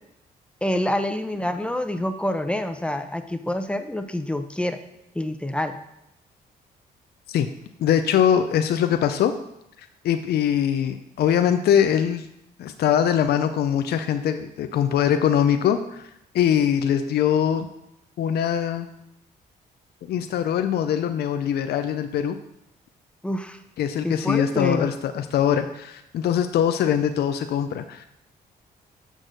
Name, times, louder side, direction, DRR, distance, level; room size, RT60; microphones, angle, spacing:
voice 1, 0.6-4.8 5.1-5.8 23.2-23.6 24.0-24.9, left 1 dB, 5° left, 8 dB, 0.8 m, -27 dB
voice 2, 7.8-9.4 10.0-12.3 12.6-16.0 16.3-17.7 18.2-18.9 20.1-22.4 23.8-28.1, left 9 dB, 75° left, 9 dB, 0.5 m, -22 dB
6.4 x 6.1 x 5.1 m, 0.81 s
cardioid pair, 75°, 17 cm